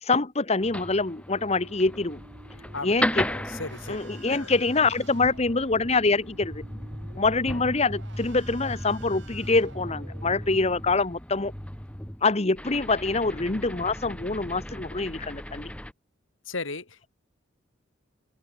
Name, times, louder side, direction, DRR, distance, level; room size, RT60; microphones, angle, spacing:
voice 1, 0.0-2.2 2.8-3.3 3.9-6.6 7.1-11.5 12.2-15.7, left 3 dB, 30° left, 1.1 m, -25 dB
sound 1, 0.6-15.9, left 1 dB, 5° left, 1.4 m, -36 dB
sound 2, 1.4-10.5, right 3 dB, 60° right, 3.4 m, -51 dB
voice 2, 2.7-4.0 4.3-4.5 16.5-17.1, left 3 dB, 70° left, 3.4 m, -36 dB
open air
head